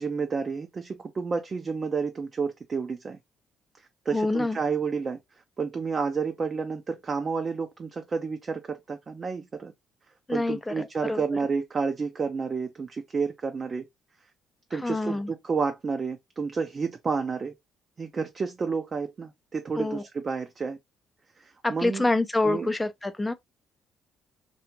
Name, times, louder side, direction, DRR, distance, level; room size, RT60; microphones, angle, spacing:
voice 1, 0.0-3.2 4.1-5.2 5.6-9.7 10.3-13.8 14.7-17.5 18.0-20.8 21.4-22.1 22.4-22.7, right 5 dB, 40° right, 0.4 m, -30 dB
voice 2, 4.1-4.6 10.3-11.2 14.7-15.3 19.8-20.0 21.6-23.3, left 2 dB, 15° left, 0.4 m, -27 dB
2.4 x 2.3 x 2.8 m
hypercardioid pair, 55°, 0 cm